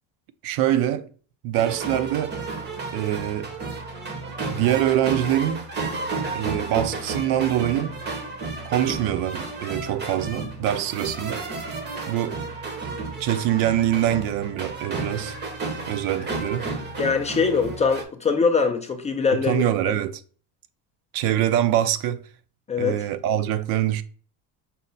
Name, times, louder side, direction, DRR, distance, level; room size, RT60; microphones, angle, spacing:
voice 1, 0.4-1.1 1.4-2.4 2.9-3.5 4.5-5.7 6.3-7.9 8.7-11.4 12.1-12.4 13.2-15.4 15.9-16.7 19.5-20.1 21.1-22.2 22.8-24.0, right 12 dB, 65° right, 0.5 m, -24 dB
sound 1, 1.6-18.0, right 3 dB, 30° right, 0.7 m, -32 dB
voice 2, 17.0-19.6 22.7-23.0, left 5 dB, 20° left, 0.3 m, -22 dB
5.5 x 2.1 x 3.8 m
cardioid pair, 130°, 37 cm